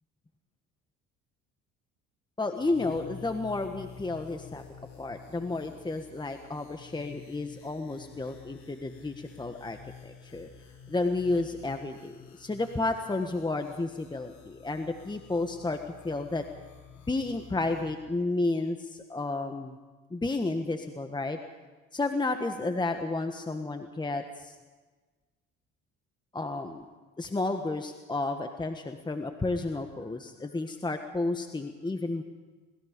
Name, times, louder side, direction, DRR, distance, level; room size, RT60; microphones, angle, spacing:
voice 1, 2.4-4.6 5.0-9.8 10.0-10.5 10.9-16.4 17.1-19.8 20.1-21.4 21.9-24.6 26.3-26.8 27.2-32.2, left 2 dB, 15° left, 6 dB, 1.4 m, -32 dB
sound 1, 2.6-18.0, left 7 dB, 65° left, 6.1 m, -50 dB
26.0 x 20.0 x 5.2 m, 1.3 s
supercardioid pair, 90°, 29 cm